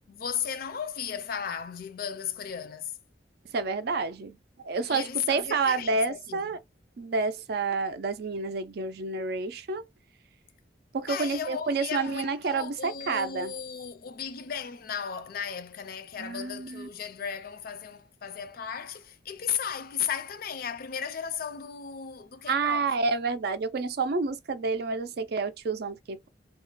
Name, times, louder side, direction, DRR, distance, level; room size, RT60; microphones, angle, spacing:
voice 1, 0.1-2.9 4.9-6.5 11.1-22.9, left 8 dB, 55° left, 0.4 m, -35 dB
voice 2, 3.5-6.6 7.0-9.8 10.9-13.5 16.2-16.9 22.5-26.3, right 4 dB, 60° right, 0.4 m, -29 dB
2.4 x 2.1 x 3.9 m
head